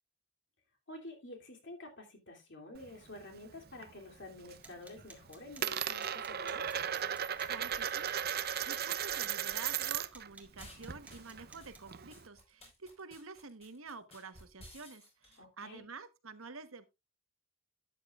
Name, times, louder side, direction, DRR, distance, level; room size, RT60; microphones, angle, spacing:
voice 1, 0.9-6.7 15.4-15.8, left 1 dB, 60° left, 3.0 m, -49 dB
Coin (dropping), 2.7-3.9 4.2-4.7 5.0-10.3 10.6-12.2, right 9 dB, 50° right, 0.7 m, -36 dB
sound 1, 4.4-11.9, right 2 dB, 5° right, 1.7 m, -58 dB
voice 2, 7.4-16.8, right 4 dB, 85° right, 1.2 m, -49 dB
sound 2, 10.4-15.4, left 1 dB, 30° left, 5.1 m, -55 dB
12.5 x 9.1 x 2.4 m
head